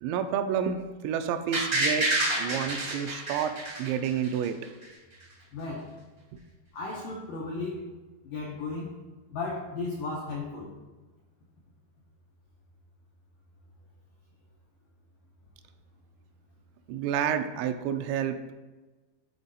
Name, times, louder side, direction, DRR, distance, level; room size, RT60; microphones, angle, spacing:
voice 1, 0.0-4.6 16.9-18.4, right 8 dB, 85° right, 8 dB, 2.8 m, -30 dB
sound 1, 1.5-4.4 4.8-4.9, right 1 dB, 60° right, 0.7 m, -28 dB
voice 2, 5.5-5.9 6.7-7.9 8.2-8.9 9.3-10.7, left 3 dB, 85° left, -3 dB, 1.9 m, -35 dB
11.5 x 4.0 x 4.0 m, 1.2 s
omnidirectional pair, 5.1 m